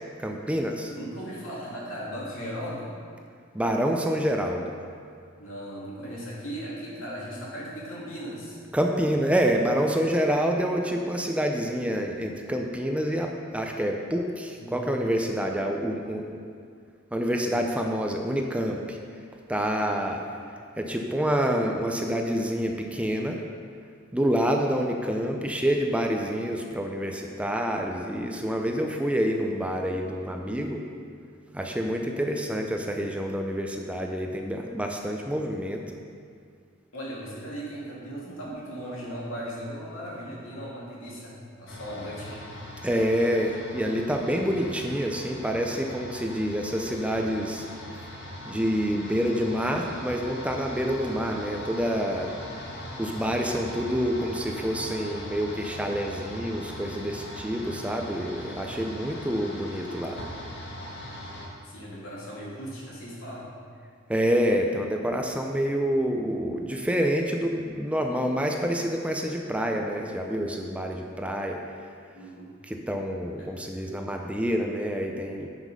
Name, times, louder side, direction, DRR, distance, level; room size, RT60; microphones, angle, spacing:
voice 1, 0.2-0.9 3.5-4.7 8.7-16.4 17.1-19.0 19.5-20.2 20.8-23.4 24.1-30.8 31.5-35.8 42.8-47.6 48.5-52.3 53.0-60.2 64.1-71.6 72.7-75.5, equal, 5° right, 2 dB, 0.5 m, -27 dB
voice 2, 0.9-2.9 5.4-8.6 14.5-15.0 17.4-17.8 19.8-20.2 36.9-42.4 61.6-63.5 72.1-72.6 73.4-73.6, equal, 80° left, -5 dB, 2.5 m, -38 dB
sound 1, 41.7-61.5, left 1 dB, 60° left, 1.6 m, -40 dB
8.9 x 5.9 x 5.3 m, 2.2 s
head